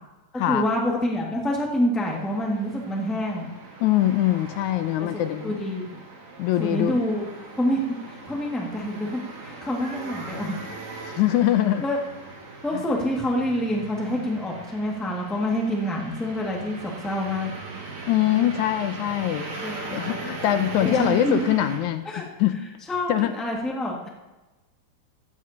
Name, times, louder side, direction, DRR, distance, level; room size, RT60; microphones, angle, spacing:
voice 1, 0.5-3.5 5.1-5.8 6.6-7.3 7.6-7.8 8.0-10.5 10.9-11.1 11.8-12.0 12.6-17.5 19.6-20.0 20.8-21.4 22.0-22.2 22.9-24.1, left 1 dB, ahead, -2 dB, 1.1 m, -27 dB
sound 1, 2.0-21.8, right 3 dB, 60° right, 3.4 m, -39 dB
voice 2, 3.8-5.5 6.4-7.0 11.1-11.9 12.7-12.8 18.1-22.6 23.1-23.3, left 12 dB, 80° left, 10 dB, 2.0 m, -23 dB
16.0 x 15.0 x 2.9 m, 1.1 s
omnidirectional pair, 3.5 m